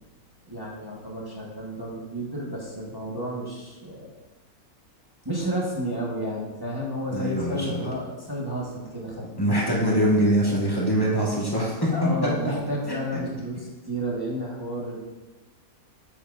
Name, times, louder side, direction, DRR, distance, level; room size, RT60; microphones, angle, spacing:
voice 1, 0.4-4.1 5.2-9.5 11.9-15.0, equal, 15° right, -4 dB, 1.3 m, -31 dB
voice 2, 7.1-7.8 9.4-11.9 12.4-12.5, equal, 15° left, -6 dB, 2.4 m, -23 dB
9.2 x 8.3 x 2.6 m, 1.1 s
omnidirectional pair, 1.5 m